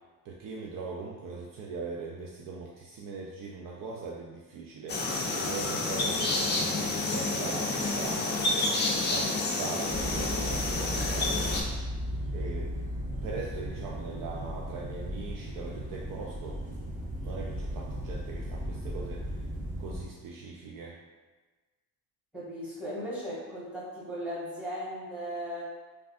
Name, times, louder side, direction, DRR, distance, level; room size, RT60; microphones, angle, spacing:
voice 1, 0.2-5.0 5.3-8.5 9.0-11.5 12.3-12.7 13.2-16.6 17.2-19.2 19.8-21.0, right 4 dB, 55° right, -2 dB, 0.4 m, -40 dB
sound 1, 4.9-11.6, left 2 dB, 25° left, 0.4 m, -29 dB
sound 2, 9.9-20.0, equal, 20° right, 0.7 m, -36 dB
voice 2, 22.3-25.6, equal, 5° right, -9 dB, 1.5 m, -37 dB
3.3 x 2.4 x 2.5 m, 1.3 s
cardioid pair, 90°, 40 cm